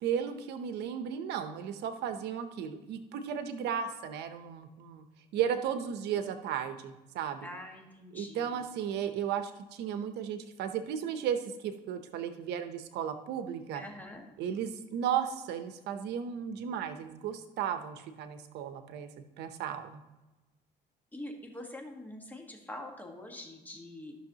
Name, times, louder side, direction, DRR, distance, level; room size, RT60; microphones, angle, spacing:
voice 1, 0.0-5.0 5.3-7.5 8.1-13.8 14.4-19.1 19.4-20.0, right 8 dB, 80° right, 9 dB, 0.8 m, -35 dB
voice 2, 7.4-8.6 13.7-14.3 21.1-24.1, left 1 dB, 10° left, 2 dB, 1.5 m, -44 dB
13.5 x 6.3 x 2.9 m, 1.1 s
cardioid pair, 110°, 17 cm